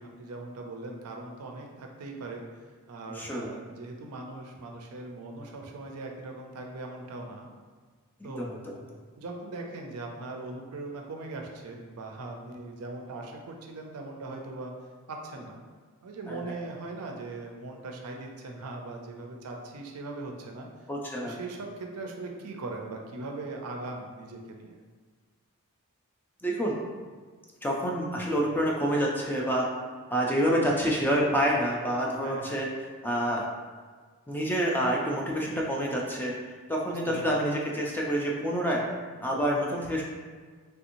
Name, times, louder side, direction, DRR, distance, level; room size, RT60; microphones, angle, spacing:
voice 1, 0.0-7.5 8.2-8.5 8.8-8.9 9.2-14.7 15.1-15.6 16.0-20.7 21.2-24.8 32.2-32.6 36.8-37.5, right 2 dB, 80° right, 2 dB, 0.5 m, -40 dB
voice 2, 3.2-3.5 8.4-8.6 8.9-9.0 16.3-16.4 20.9-21.3 26.4-26.8 27.6-29.7 30.1-32.7 33.0-33.5 34.3-36.3 36.7-38.8 39.2-40.0, equal, 10° left, -2 dB, 0.4 m, -27 dB
3.4 x 2.9 x 2.6 m, 1.5 s
head